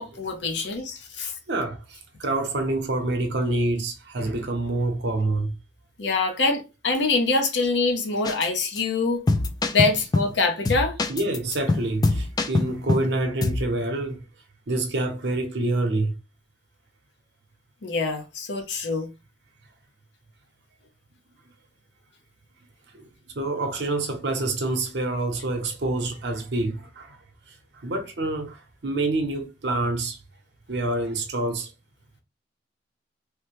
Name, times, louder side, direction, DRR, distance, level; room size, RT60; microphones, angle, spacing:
voice 1, 0.0-1.3 6.0-9.3 9.7-10.9 17.8-19.1, left 3 dB, 75° left, 0.8 m, -24 dB
voice 2, 1.5-5.5 11.1-14.2 14.7-16.1 22.9-23.1 23.3-27.2 27.5-30.2 30.7-31.7, right 2 dB, 65° right, 0.7 m, -27 dB
sound 1, 8.3-8.5 8.8-8.9 9.3-10.4 10.7-13.1 13.4-13.7, left 2 dB, 20° left, 0.3 m, -24 dB
3.2 x 2.1 x 3.1 m
head